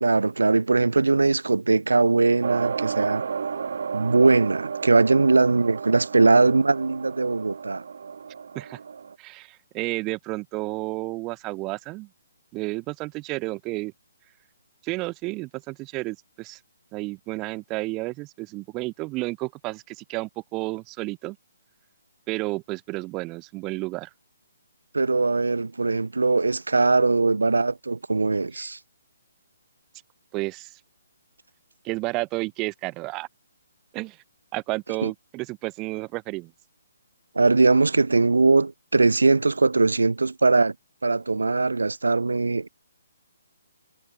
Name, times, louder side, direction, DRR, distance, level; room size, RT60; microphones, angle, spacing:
voice 1, 0.0-3.2 3.9-7.8 24.9-28.8 35.0-35.1 37.3-40.7 41.0-42.7, right 3 dB, 75° right, 1.0 m, -21 dB
sound 1, 2.4-9.1, right 6 dB, 60° right, 3.5 m, -32 dB
voice 2, 9.2-12.1 12.5-13.9 14.8-16.6 16.9-21.4 22.3-24.1 30.3-30.7 31.8-33.3 33.9-34.2 34.5-36.5, right 22 dB, 20° right, 1.3 m, -31 dB
figure-of-eight pair, 135°, 0 cm